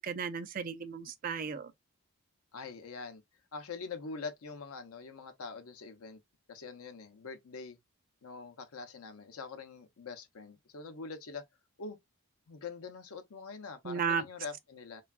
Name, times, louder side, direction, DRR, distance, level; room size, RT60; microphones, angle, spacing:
voice 1, 0.0-1.7 13.8-14.2, right 6 dB, 40° right, 0.3 m, -34 dB
voice 2, 2.5-3.2 3.5-6.2 6.5-7.8 8.2-11.4 11.8-12.0 12.5-15.0, left 4 dB, 85° left, 0.6 m, -44 dB
3.3 x 2.3 x 2.3 m
head